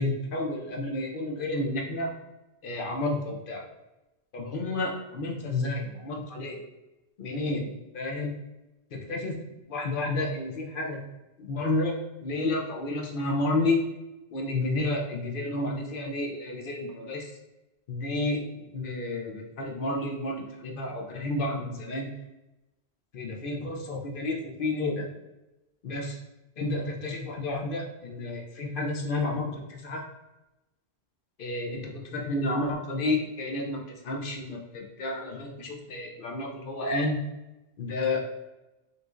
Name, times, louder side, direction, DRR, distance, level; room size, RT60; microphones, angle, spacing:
voice 1, 0.0-2.1 2.6-3.6 4.3-6.6 7.2-8.3 8.9-9.4 9.7-11.0 11.4-12.0 12.2-13.8 14.3-17.2 17.9-18.4 18.7-22.1 23.1-25.1 25.8-26.2 26.6-30.0 31.4-37.2 37.8-38.3, left 2 dB, 55° left, 1 dB, 0.9 m, -31 dB
4.9 x 3.1 x 2.5 m, 1.0 s
omnidirectional pair, 1.1 m